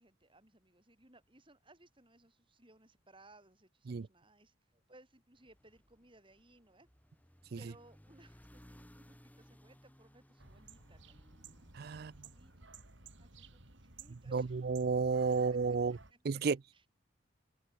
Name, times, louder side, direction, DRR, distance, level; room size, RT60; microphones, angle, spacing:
voice 1, 0.0-6.9 7.6-11.2 12.4-12.8 13.2-14.5 15.5-16.2 16.7-16.9, right 2 dB, 25° right, 7.9 m, -63 dB
sound 1, 5.3-13.7, equal, 10° left, 2.0 m, -62 dB
sound 2, 10.4-16.1, right 4 dB, 70° right, 4.0 m, -56 dB
voice 2, 11.7-12.1 14.3-16.0 16.2-16.6, right 5 dB, 50° right, 0.4 m, -32 dB
open air
head